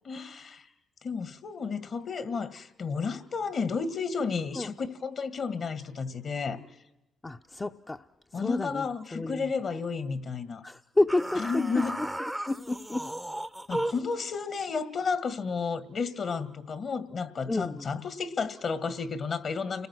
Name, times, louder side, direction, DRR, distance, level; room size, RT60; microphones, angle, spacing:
voice 1, 0.0-0.7 1.0-6.6 8.3-10.6 11.4-12.0 13.7-19.9, left 5 dB, 55° left, 2.0 m, -32 dB
voice 2, 7.2-8.1 8.3-8.9 9.1-9.5 10.6-11.6 12.5-13.1 17.5-17.9, left 2 dB, 20° left, 0.8 m, -29 dB
sound 1, 11.1-14.1, right 1 dB, 5° right, 0.8 m, -35 dB
30.0 x 20.0 x 6.3 m
supercardioid pair, 60°, 0 cm